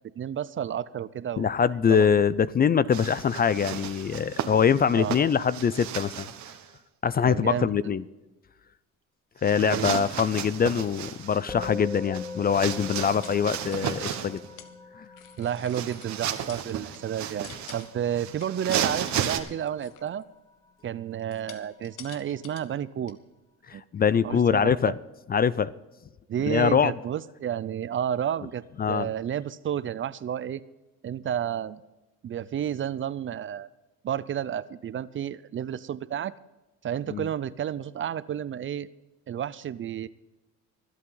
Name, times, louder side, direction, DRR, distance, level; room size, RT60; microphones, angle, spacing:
voice 1, 0.2-1.5 1.9-2.1 5.0-5.2 7.2-7.8 9.6-10.1 15.4-20.2 20.8-23.2 23.7-23.8 24.2-24.9 26.3-30.6 31.0-31.8 32.2-33.7 34.0-36.3 36.8-38.9 39.3-40.1, right 9 dB, 40° right, 18 dB, 0.5 m, -31 dB
voice 2, 1.4-6.3 7.0-8.0 9.4-14.4 15.0-15.1 23.7-25.0 25.3-25.7 26.4-26.9 28.8-29.1 37.1-37.3, left 7 dB, 30° left, 18 dB, 0.4 m, -23 dB
sound 1, 2.9-6.6 9.4-14.5 15.5-19.4, right 9 dB, 60° right, 1.3 m, -34 dB
Musical instrument, 11.5-21.0, left 4 dB, 10° left, 1.5 m, -43 dB
sound 2, 12.7-14.7 15.0-16.1 16.4-18.1 18.4-20.2 21.2-22.7 23.1-23.2, left 9 dB, 75° left, 1.4 m, -49 dB
25.0 x 8.5 x 3.9 m, 1.1 s
cardioid pair, 105°, 32 cm